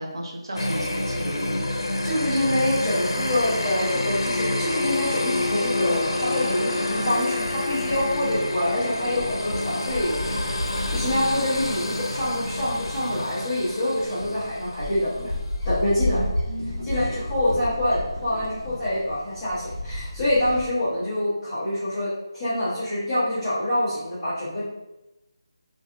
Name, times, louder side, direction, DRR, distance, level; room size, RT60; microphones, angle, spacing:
voice 1, 0.0-1.6 16.1-16.9, right 1 dB, 60° right, 0 dB, 0.7 m, -34 dB
sound 1, 0.6-15.3, left 2 dB, 75° left, 0.6 m, -28 dB
voice 2, 2.0-10.4 10.9-15.3 15.6-16.2 16.8-24.6, left 1 dB, 5° left, -17 dB, 0.7 m, -26 dB
sound 2, 7.4-20.7, left 1 dB, 85° right, 1.5 m, -33 dB
4.6 x 2.7 x 2.4 m, 0.96 s
figure-of-eight pair, 180°, 3 cm